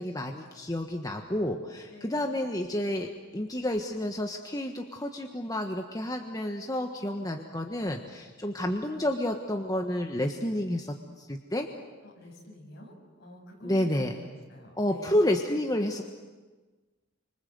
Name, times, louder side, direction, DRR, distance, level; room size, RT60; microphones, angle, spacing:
voice 1, 0.0-11.7 13.6-14.2 14.8-16.0, left 1 dB, 20° left, 3 dB, 1.3 m, -30 dB
voice 2, 1.9-2.3 12.0-15.2, left 1 dB, 60° left, 1 dB, 6.9 m, -48 dB
28.0 x 25.5 x 8.0 m, 1.3 s
head